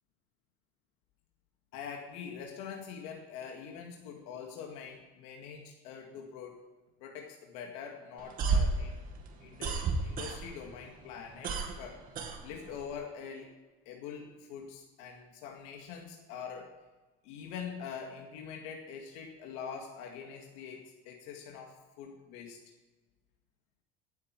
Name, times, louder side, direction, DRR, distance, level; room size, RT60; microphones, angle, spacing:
voice 1, 1.7-6.6 7.0-9.0 9.4-12.1 12.4-13.6 13.9-16.7 17.2-22.6, left 7 dB, 85° left, 1 dB, 2.0 m, -44 dB
sound 1, 8.2-10.7 11.0-12.9, right 4 dB, 45° right, 2.0 m, -31 dB
17.0 x 8.4 x 4.7 m, 1.2 s
cardioid pair, 135°, 20 cm